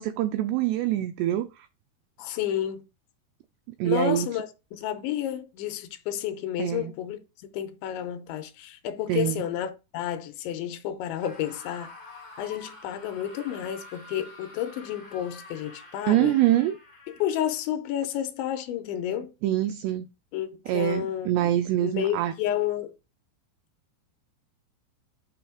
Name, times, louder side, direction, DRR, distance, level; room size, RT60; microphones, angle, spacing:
voice 1, 0.0-1.7 3.8-4.3 6.6-6.9 9.1-9.4 16.1-16.8 19.4-20.1 20.7-22.3, right 13 dB, 90° right, 2.3 m, -25 dB
voice 2, 2.2-2.8 3.8-7.2 7.5-11.9 12.4-16.3 17.2-19.3 20.3-21.5 21.8-23.0, left 10 dB, 85° left, 3.0 m, -31 dB
Screaming, 11.1-17.6, left 2 dB, 70° left, 0.5 m, -47 dB
9.0 x 3.2 x 4.9 m
omnidirectional pair, 5.3 m